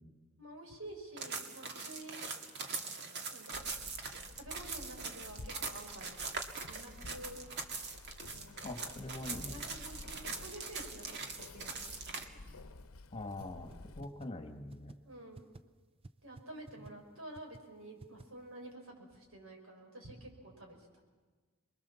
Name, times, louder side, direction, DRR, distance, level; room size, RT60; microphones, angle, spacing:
voice 1, 0.4-2.3 3.3-3.7 4.4-6.4 6.7-7.4 8.3-8.6 9.4-11.0 11.5-12.5 15.0-15.5 16.2-20.9, right 1 dB, 80° right, 2 dB, 5.8 m, -50 dB
sound 1, 1.2-12.2, right 4 dB, 55° right, 2.0 m, -42 dB
Keys jangling, 3.5-14.0, left 2 dB, 80° left, 0.9 m, -52 dB
voice 2, 8.6-9.6 13.1-14.9, left 2 dB, 30° left, 5 dB, 1.7 m, -43 dB
sound 2, 13.4-13.5 13.7-13.8 14.0-14.3 14.7-15.0 15.4-15.6 16.0-16.1 16.4-16.5 16.7-16.9 17.4-17.6 18.0-18.2, right 2 dB, 25° right, 0.6 m, -50 dB
28.0 x 22.0 x 7.1 m, 1.4 s
head